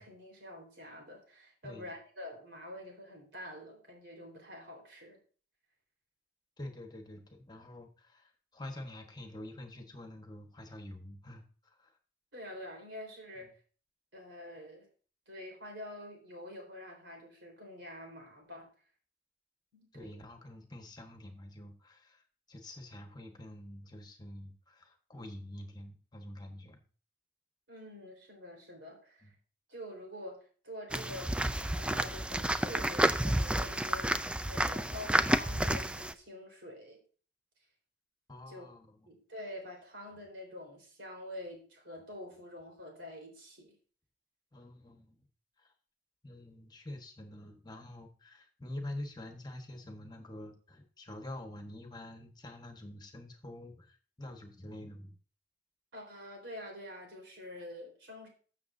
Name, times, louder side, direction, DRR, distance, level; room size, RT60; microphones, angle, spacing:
voice 1, 0.0-5.2 12.3-13.5 14.1-14.9 15.3-18.7 19.7-20.2 27.7-29.3 29.7-34.1 34.5-37.0 38.5-38.7 39.1-43.8 55.9-58.3, left 1 dB, 85° right, 1 dB, 4.0 m, -47 dB
voice 2, 6.6-11.4 11.8-11.9 13.4-13.5 19.9-22.2 22.5-26.8 29.2-29.3 38.3-39.1 44.5-45.2 45.6-45.7 46.2-55.2, left 1 dB, 25° left, 4 dB, 1.3 m, -47 dB
sound 1, 30.9-36.1, right 1 dB, 5° right, 0.3 m, -30 dB
14.0 x 6.7 x 2.7 m, 0.41 s
head